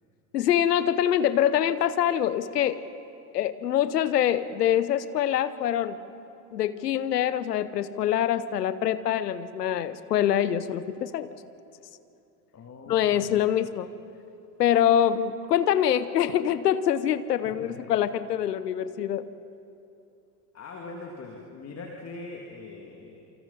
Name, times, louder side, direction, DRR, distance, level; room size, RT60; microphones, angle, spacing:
voice 1, 0.3-2.8 3.3-6.0 6.5-11.3 12.9-13.9 14.6-19.2, left 10 dB, 75° left, 15 dB, 0.9 m, -25 dB
voice 2, 12.5-13.4 17.4-17.9 20.5-23.2, left 3 dB, 30° left, 0 dB, 2.4 m, -42 dB
28.0 x 25.5 x 4.1 m, 2.7 s
figure-of-eight pair, 65°, 49 cm